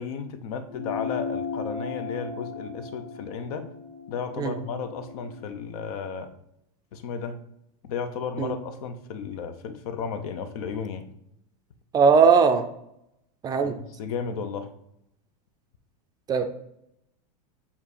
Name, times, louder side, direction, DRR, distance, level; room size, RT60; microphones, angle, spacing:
voice 1, 0.0-3.7 4.1-6.3 6.9-7.4 7.8-11.1 13.6-14.7, left 6 dB, 70° left, 10 dB, 0.8 m, -34 dB
sound 1, 0.7-5.5, left 5 dB, 90° left, 1.9 m, -36 dB
voice 2, 11.9-12.6 13.4-13.8 16.3-16.5, right 5 dB, 20° right, 7 dB, 0.4 m, -19 dB
7.2 x 2.8 x 4.9 m, 0.79 s
supercardioid pair, 145°, 20 cm